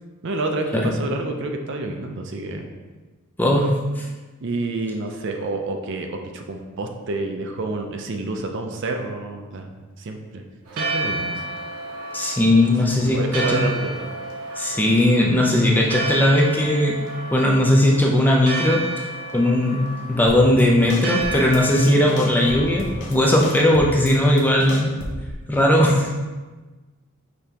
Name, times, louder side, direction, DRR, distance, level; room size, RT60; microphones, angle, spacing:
voice 1, 0.2-2.6 4.4-9.7 10.0-10.4 10.7-11.4 13.1-14.1 25.9-26.0, right 2 dB, 55° right, 4 dB, 0.5 m, -29 dB
voice 2, 3.4-4.1 12.1-13.6 14.6-19.1 19.3-25.0 25.5-26.1, left 1 dB, 10° left, -1 dB, 0.4 m, -18 dB
Church bell, 10.7-23.3, right 2 dB, 85° right, 0.9 m, -32 dB
sound 1, 20.3-20.6 20.9-21.6 21.9-23.2 23.4-25.3, left 1 dB, 55° left, 0.7 m, -32 dB
5.1 x 3.4 x 2.8 m, 1.3 s
head